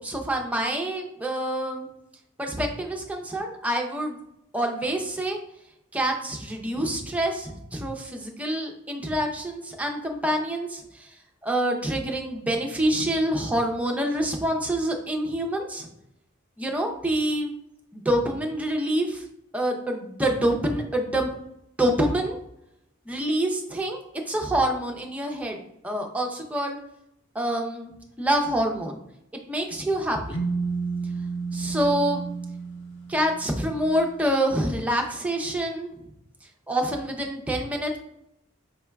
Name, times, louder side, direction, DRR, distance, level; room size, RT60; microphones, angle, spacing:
voice 1, 0.0-1.9 2.4-4.2 4.5-5.4 5.9-11.1 11.4-15.9 16.6-17.5 17.9-19.2 19.5-21.3 21.8-22.4 23.1-24.0 24.3-25.6 25.8-26.8 27.3-27.9 28.2-29.0 29.5-30.4 31.5-32.2 33.1-35.9 36.7-38.0, right 1 dB, 5° right, 2 dB, 0.5 m, -26 dB
sound 1, 30.3-34.2, right 4 dB, 60° left, 0.6 m, -31 dB
5.2 x 3.4 x 2.2 m, 0.79 s
head